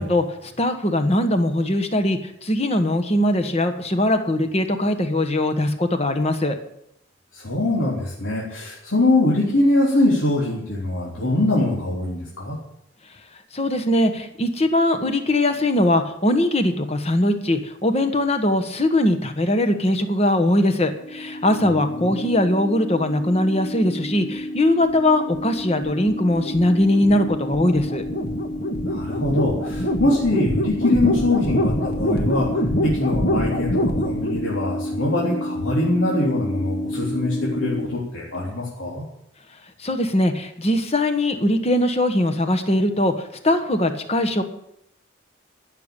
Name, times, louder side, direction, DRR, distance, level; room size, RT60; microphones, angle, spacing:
voice 1, 0.0-6.6 13.5-28.0 39.8-44.4, left 1 dB, 30° left, 8 dB, 1.3 m, -21 dB
voice 2, 7.3-12.6 21.5-22.1 28.9-39.0, left 2 dB, 80° left, -5 dB, 3.6 m, -23 dB
sound 1, 20.9-37.8, left 1 dB, 50° left, 1.6 m, -26 dB
15.0 x 6.8 x 8.9 m, 0.77 s
head